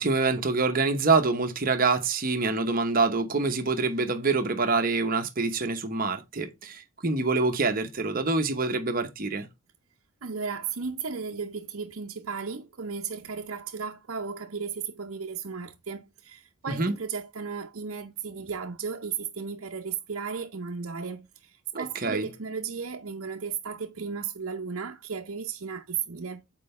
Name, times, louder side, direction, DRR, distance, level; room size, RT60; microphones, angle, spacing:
voice 1, 0.0-9.5 16.7-16.9 21.7-22.3, right 3 dB, 40° right, 0.9 m, -26 dB
voice 2, 10.2-26.4, right 6 dB, 70° right, 0.7 m, -35 dB
7.5 x 4.5 x 4.2 m
head